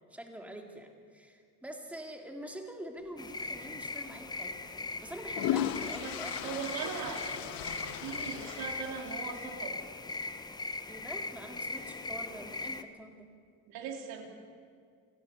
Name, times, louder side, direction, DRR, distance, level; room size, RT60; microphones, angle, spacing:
voice 1, 0.1-4.5 5.0-6.6 10.9-13.3, right 1 dB, 5° right, 2 dB, 2.0 m, -45 dB
sound 1, 3.2-12.8, left 3 dB, 10° left, 0.6 m, -40 dB
sound 2, 3.6-3.8 5.0-9.6, left 11 dB, 75° left, 1.1 m, -37 dB
voice 2, 6.0-9.8 13.7-14.3, right 6 dB, 85° right, 2 dB, 3.5 m, -40 dB
28.0 x 15.5 x 6.8 m, 2.2 s
cardioid pair, 175°, 36 cm